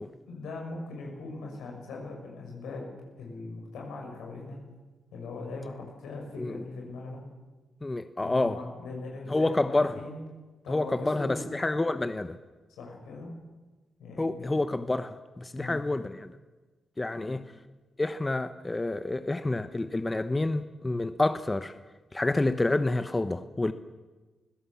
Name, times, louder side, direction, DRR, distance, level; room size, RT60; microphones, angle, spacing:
voice 1, 0.3-4.6 5.1-7.2 8.2-10.2 10.6-11.4 12.8-13.3 14.0-14.6 15.5-15.8 17.2-17.4, left 3 dB, 90° left, 0 dB, 6.6 m, -40 dB
voice 2, 7.8-8.6 9.3-10.0 10.7-12.3 14.2-16.3 17.0-17.4 18.0-21.7 22.1-23.7, left 2 dB, 25° left, 11 dB, 1.1 m, -28 dB
24.5 x 16.5 x 7.4 m, 1.2 s
supercardioid pair, 55°, 0 cm